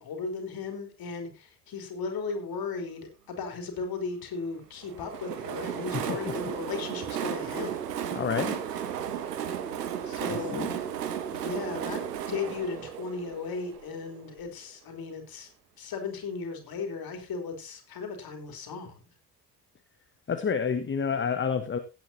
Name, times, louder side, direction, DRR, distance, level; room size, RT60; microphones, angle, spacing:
voice 1, 0.0-8.0 10.0-10.7 11.3-12.0 12.3-15.5 15.8-19.0, left 4 dB, 45° left, 5 dB, 3.7 m, -36 dB
Train, 4.8-14.5, right 9 dB, 75° right, 1.3 m, -34 dB
voice 2, 8.1-8.6 10.3-10.7 20.3-21.8, left 6 dB, 25° left, 9 dB, 1.2 m, -29 dB
17.0 x 9.2 x 2.8 m, 0.27 s
figure-of-eight pair, 50°, 48 cm